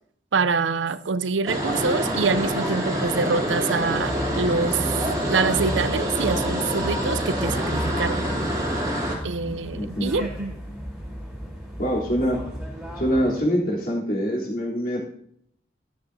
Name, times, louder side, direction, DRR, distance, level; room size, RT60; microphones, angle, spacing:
voice 1, 0.3-4.8 5.3-8.2 9.2-10.5, right 4 dB, 90° right, 14 dB, 0.6 m, -25 dB
sound 1, 1.5-9.2, equal, 20° right, 2.8 m, -26 dB
sound 2, 3.8-13.4, equal, 5° right, 3.7 m, -33 dB
voice 2, 9.4-10.1 11.8-12.4 13.0-15.0, equal, 50° left, -3 dB, 3.5 m, -25 dB
13.0 x 12.5 x 2.7 m, 0.67 s
head